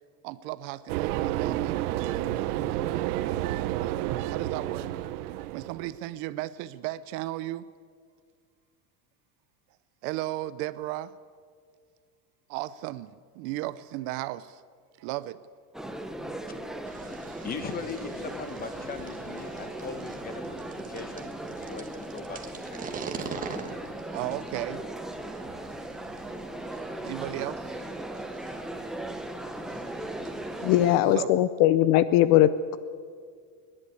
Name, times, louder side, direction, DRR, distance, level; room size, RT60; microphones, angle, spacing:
voice 1, 0.2-1.8 4.3-4.9 5.5-7.7 10.0-11.1 12.5-14.6 15.0-15.4 24.1-24.8 27.0-27.9 30.6-30.7 31.1-31.3, right 16 dB, 50° right, 0.5 m, -35 dB
sound 1, 0.9-5.9, right 14 dB, 75° right, 1.0 m, -30 dB
sound 2, 15.7-31.0, right 1 dB, ahead, 0.6 m, -38 dB
sound 3, 16.8-30.9, right 5 dB, 15° right, 1.3 m, -44 dB
voice 2, 17.4-23.2, left 5 dB, 20° left, 1.3 m, -40 dB
voice 3, 30.6-32.8, left 13 dB, 45° left, 0.6 m, -20 dB
29.5 x 11.0 x 8.4 m
cardioid pair, 165°, 46 cm